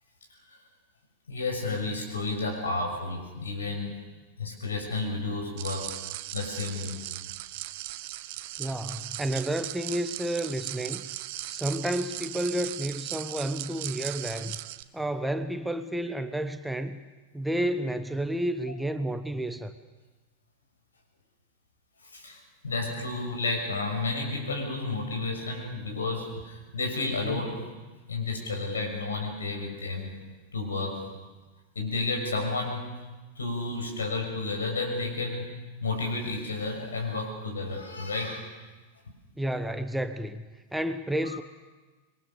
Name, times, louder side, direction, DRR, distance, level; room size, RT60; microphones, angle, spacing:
voice 1, 1.3-3.9 4.4-6.0 6.3-7.0 22.0-27.6 28.1-30.1 30.5-31.1 31.7-32.9 33.4-35.5 35.8-38.5 41.2-41.4, left 3 dB, 70° left, 2 dB, 6.5 m, -31 dB
sound 1, 5.6-14.8, right 16 dB, 50° right, 0.8 m, -38 dB
voice 2, 8.6-11.1 11.5-14.6 14.9-17.0 17.3-19.7 39.4-40.4 40.7-41.4, right 1 dB, 5° right, 9 dB, 1.0 m, -31 dB
26.5 x 22.5 x 6.8 m, 1.3 s
figure-of-eight pair, 90°, 0 cm